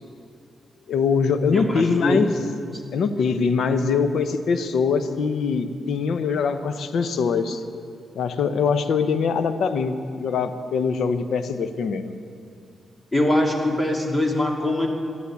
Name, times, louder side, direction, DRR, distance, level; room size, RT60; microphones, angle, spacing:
voice 1, 0.9-2.3 2.9-7.6 8.2-12.1, left 5 dB, 80° left, 10 dB, 0.9 m, -23 dB
voice 2, 1.5-2.2 13.1-14.9, left 1 dB, 15° left, 1 dB, 2.5 m, -22 dB
12.5 x 11.0 x 10.0 m, 2.4 s
cardioid pair, 85°, 0 cm